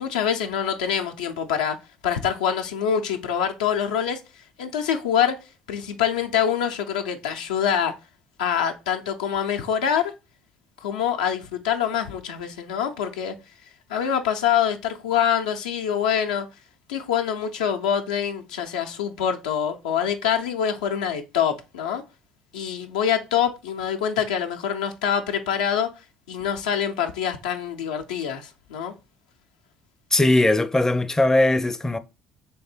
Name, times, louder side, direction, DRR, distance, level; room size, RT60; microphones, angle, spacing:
voice 1, 0.0-1.8 2.0-5.4 5.7-7.9 8.4-10.1 10.8-13.3 13.9-16.5 16.9-22.0 22.5-25.9 26.3-28.9, left 8 dB, 85° left, 0.5 m, -25 dB
voice 2, 30.1-32.0, left 2 dB, 15° left, 0.5 m, -19 dB
3.4 x 3.2 x 4.3 m
hypercardioid pair, 55°, 4 cm